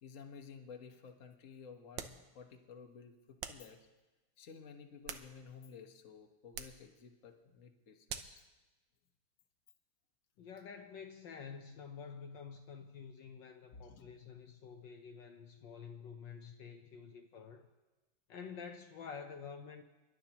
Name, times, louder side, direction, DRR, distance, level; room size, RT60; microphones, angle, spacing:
voice 1, 0.0-3.8 4.4-8.4 13.7-14.1, left 6 dB, 45° left, 4 dB, 1.4 m, -53 dB
sound 1, 1.9-2.3 3.4-3.7 4.8-5.7 6.5-6.9 8.1-8.4, right 8 dB, 70° right, 1.5 m, -46 dB
voice 2, 10.4-17.7 18.3-19.8, left 6 dB, 70° left, 4 dB, 1.4 m, -49 dB
30.0 x 11.5 x 3.0 m, 1.1 s
omnidirectional pair, 2.2 m